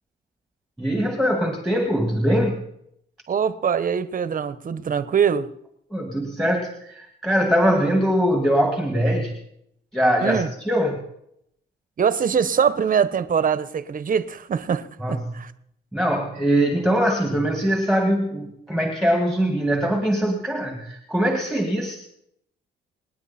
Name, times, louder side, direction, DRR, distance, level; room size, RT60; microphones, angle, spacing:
voice 1, 0.8-2.6 5.9-9.3 9.9-11.0 15.0-15.4 15.9-22.0, equal, ahead, 2.1 m, -22 dB
voice 2, 3.3-5.5 10.2-10.5 12.0-15.5, right 7 dB, 45° right, 1.1 m, -23 dB
27.5 x 9.6 x 4.4 m
cardioid pair, 90°, 20 cm